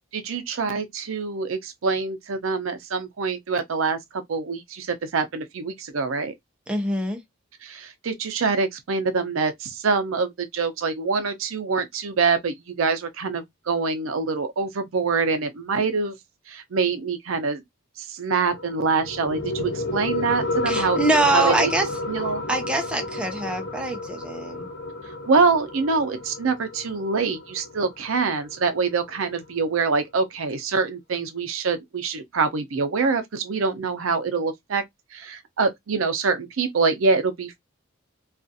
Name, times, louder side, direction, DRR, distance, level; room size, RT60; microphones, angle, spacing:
voice 1, 0.1-4.0 4.3-6.3 7.6-16.2 16.5-17.6 18.0-21.0 21.3-21.7 22.1-22.4 25.3-34.8 35.1-37.6, right 4 dB, 80° right, 0.5 m, -25 dB
voice 2, 6.7-7.2 20.7-21.9 22.5-24.7, right 2 dB, 5° right, 0.5 m, -24 dB
sound 1, 18.5-29.5, left 2 dB, 60° left, 0.6 m, -31 dB
2.4 x 2.3 x 2.6 m
head